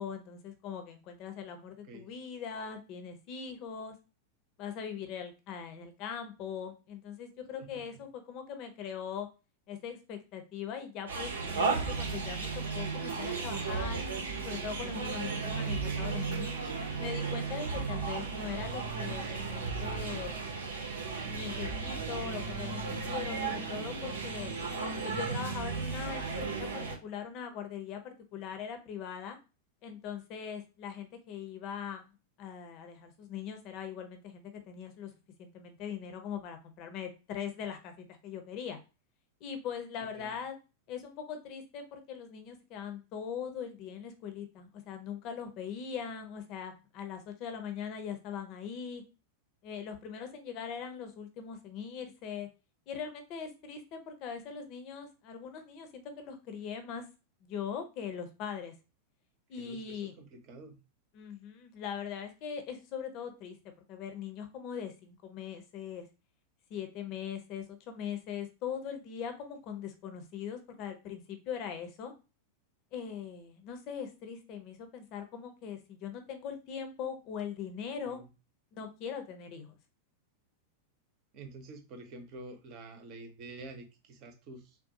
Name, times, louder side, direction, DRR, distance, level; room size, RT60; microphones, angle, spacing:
voice 1, 0.0-3.9 4.6-9.3 9.7-14.0 14.4-16.5 17.0-20.4 21.2-24.5 25.0-29.4 29.8-32.0 32.4-35.1 35.4-38.8 39.4-40.6 40.9-49.0 49.6-52.5 52.9-57.0 57.4-58.7 59.5-60.1 61.1-63.6 63.9-66.1 66.7-72.1 72.9-78.2 78.7-79.7, left 7 dB, 40° left, 6 dB, 0.8 m, -41 dB
voice 2, 7.6-8.0 40.0-40.3 59.6-60.8 78.0-78.3 81.3-84.8, right 2 dB, 40° right, 5 dB, 0.9 m, -48 dB
sound 1, 11.1-27.0, right 4 dB, 70° right, 0.8 m, -35 dB
3.8 x 2.2 x 2.8 m, 0.30 s
figure-of-eight pair, 90°, 0 cm